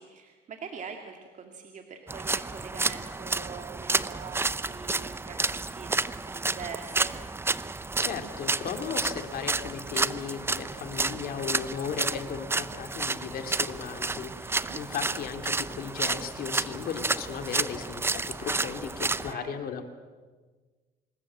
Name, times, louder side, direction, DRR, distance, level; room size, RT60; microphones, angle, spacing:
voice 1, 0.0-7.2 14.5-14.8 19.3-19.6, right 6 dB, 45° right, 4 dB, 2.3 m, -43 dB
sound 1, 2.1-19.3, right 3 dB, 15° right, 0.7 m, -31 dB
voice 2, 8.0-19.9, left 7 dB, 60° left, 7 dB, 2.9 m, -36 dB
26.5 x 20.0 x 7.6 m, 1.4 s
cardioid pair, 110°, 17 cm